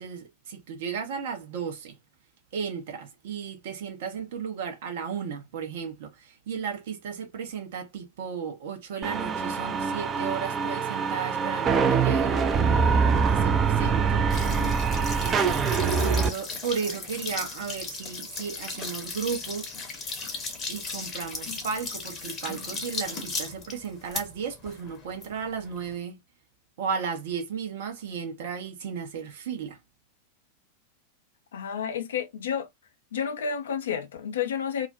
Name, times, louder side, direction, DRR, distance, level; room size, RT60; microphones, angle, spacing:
voice 1, 0.0-2.0 2.5-12.4 13.1-14.1 15.2-15.6 16.0-19.7 20.7-26.2 26.8-29.8, right 6 dB, 55° right, 0.7 m, -34 dB
sound 1, 9.0-16.3, right 5 dB, 25° right, 0.4 m, -24 dB
voice 2, 14.1-14.8 31.5-32.7 33.1-34.9, left 7 dB, 65° left, 0.5 m, -31 dB
sound 2, 14.3-25.9, left 4 dB, 25° left, 0.8 m, -37 dB
2.4 x 2.0 x 2.5 m
figure-of-eight pair, 90°, 0 cm